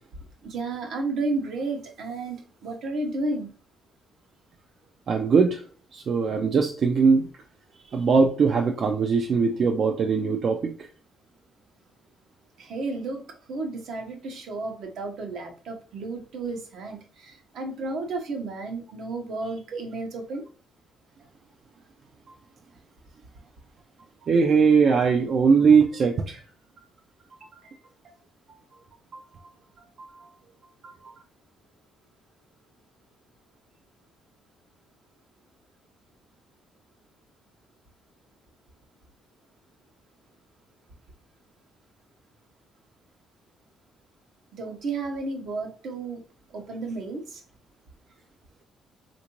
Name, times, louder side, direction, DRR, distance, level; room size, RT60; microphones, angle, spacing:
voice 1, 0.4-3.5 12.6-20.5 44.5-46.2 46.5-47.4, right 3 dB, 75° right, 0.8 m, -32 dB
voice 2, 5.1-5.6 5.9-7.3 7.9-10.9 24.2-26.4 29.1-29.2 30.0-30.1 30.8-31.1, right 5 dB, 55° right, 0.4 m, -21 dB
3.4 x 2.5 x 3.0 m
cardioid pair, 90°, 0 cm